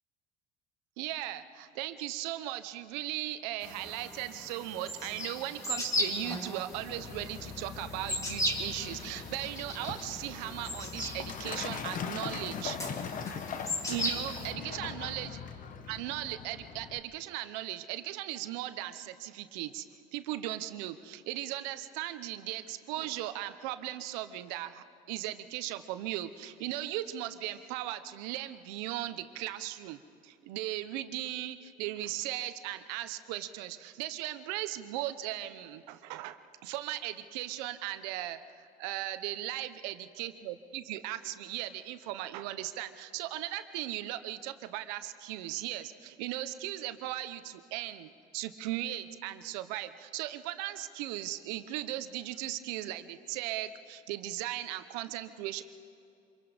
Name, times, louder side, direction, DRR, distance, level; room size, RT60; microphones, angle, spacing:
voice 1, 1.0-12.8 13.9-15.4 15.9-19.8 20.1-55.6, right 14 dB, 85° right, 11 dB, 0.9 m, -37 dB
sound 1, 3.6-14.5, left 1 dB, 15° left, 2.3 m, -37 dB
Truck, 6.7-17.0, left 6 dB, 40° left, 1.1 m, -41 dB
25.5 x 22.0 x 5.1 m, 2.6 s
cardioid pair, 120°, 21 cm